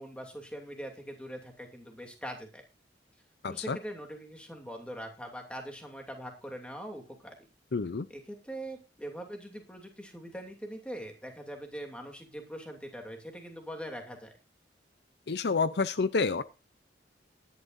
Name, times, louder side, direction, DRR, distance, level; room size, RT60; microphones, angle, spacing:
voice 1, 0.0-2.6 3.5-7.4 8.1-14.3, equal, 5° left, 3 dB, 2.7 m, -42 dB
voice 2, 3.4-3.8 7.7-8.1 15.3-16.4, left 4 dB, 65° left, 14 dB, 0.5 m, -28 dB
19.0 x 11.0 x 2.6 m, 0.28 s
head